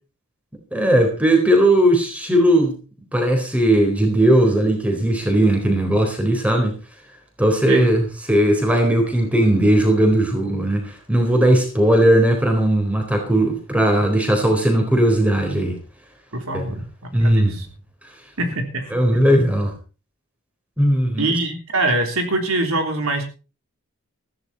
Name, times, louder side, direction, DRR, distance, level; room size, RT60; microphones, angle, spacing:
voice 1, 0.7-2.8 3.1-6.7 7.4-15.8 16.5-16.6 17.1-17.5 18.9-19.7 20.8-21.3, right 1 dB, 5° right, 3 dB, 4.0 m, -17 dB
voice 2, 16.3-16.8 17.2-17.7 18.4-19.0 21.2-23.2, right 2 dB, 80° right, 4 dB, 3.4 m, -23 dB
15.0 x 13.5 x 4.2 m, 0.35 s
head